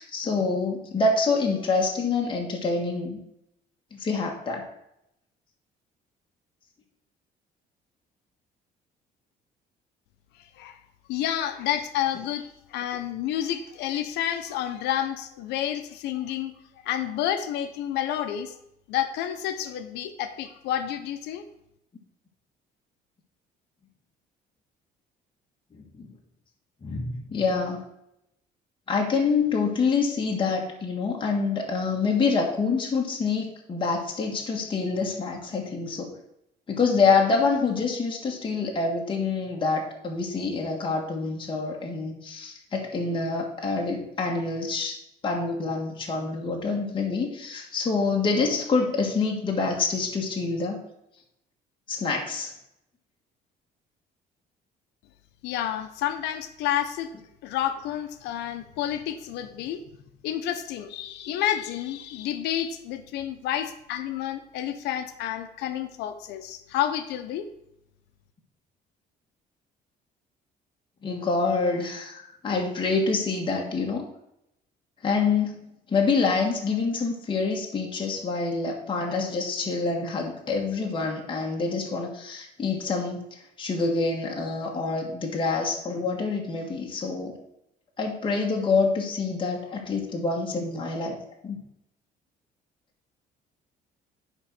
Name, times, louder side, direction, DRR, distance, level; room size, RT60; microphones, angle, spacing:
voice 1, 0.0-3.2 3.9-4.6 26.0-26.1 26.8-27.8 28.9-36.1 36.7-45.0 45.2-50.8 51.9-52.5 71.0-74.1 75.0-75.6 75.9-83.2 83.6-87.3 88.0-91.2 91.4-91.6, left 4 dB, 30° left, 0 dB, 1.6 m, -26 dB
voice 2, 11.1-16.5 16.8-18.5 18.9-21.4 55.4-57.1 57.4-59.8 60.2-67.5, left 11 dB, 85° left, 10 dB, 0.9 m, -30 dB
9.8 x 4.1 x 6.1 m, 0.80 s
cardioid pair, 110°, 17 cm